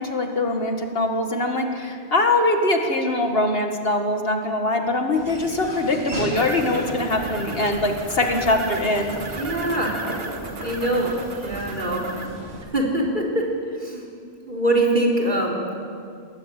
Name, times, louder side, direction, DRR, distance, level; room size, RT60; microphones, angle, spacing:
voice 1, 0.0-9.2, left 2 dB, 65° left, 4 dB, 2.1 m, -22 dB
Laughter / Walk footsteps, 5.1-12.6, right 1 dB, 85° right, 3.5 m, -35 dB
sound 1, 6.3-12.3, right 3 dB, 70° right, 1.8 m, -37 dB
voice 2, 9.4-9.9 10.6-11.1 11.4-12.0 12.7-13.4 13.8-14.1 14.5-15.6, right 1 dB, 50° right, 0 dB, 4.0 m, -23 dB
20.5 x 19.0 x 8.4 m, 2.3 s
omnidirectional pair, 1.0 m